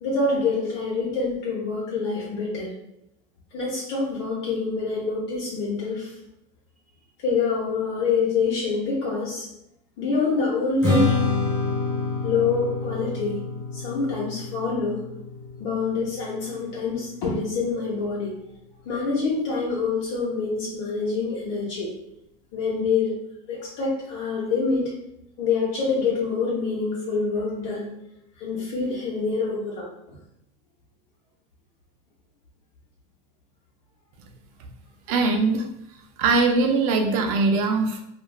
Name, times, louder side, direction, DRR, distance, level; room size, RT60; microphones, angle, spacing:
voice 1, 0.0-2.7 3.5-6.1 7.2-9.5 10.0-11.2 12.2-13.4 13.7-15.0 15.6-18.4 18.8-21.9 22.5-23.1 23.5-24.9 25.4-27.9 28.4-29.9, left 4 dB, 65° left, -6 dB, 0.9 m, -26 dB
Strum, 10.8-17.1, left 3 dB, 15° left, 1.0 m, -28 dB
voice 2, 35.1-35.7 36.2-38.0, right 3 dB, 75° right, 3 dB, 0.5 m, -21 dB
3.1 x 2.4 x 2.3 m, 0.80 s
cardioid pair, 165°, 18 cm